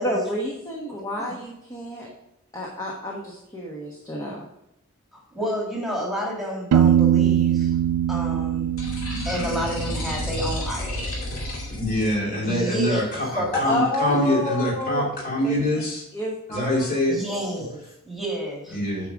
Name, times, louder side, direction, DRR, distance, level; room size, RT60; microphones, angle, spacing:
voice 1, 0.0-2.1 2.5-4.5 13.5-15.0 15.4-15.5 16.1-17.0, left 1 dB, 15° left, -2 dB, 1.2 m, -29 dB
voice 2, 5.1-7.8 8.1-8.7 9.2-11.2 12.4-13.6 14.1-14.2 17.1-18.8, equal, ahead, -3 dB, 2.1 m, -30 dB
Piano, 6.7-10.4, right 10 dB, 85° right, 0.3 m, -22 dB
sound 1, 8.8-12.1, left 1 dB, 60° left, 2.4 m, -30 dB
voice 3, 11.8-16.0 16.5-17.1 18.7-19.1, equal, 40° left, -3 dB, 2.7 m, -24 dB
8.7 x 5.2 x 4.7 m, 0.83 s
head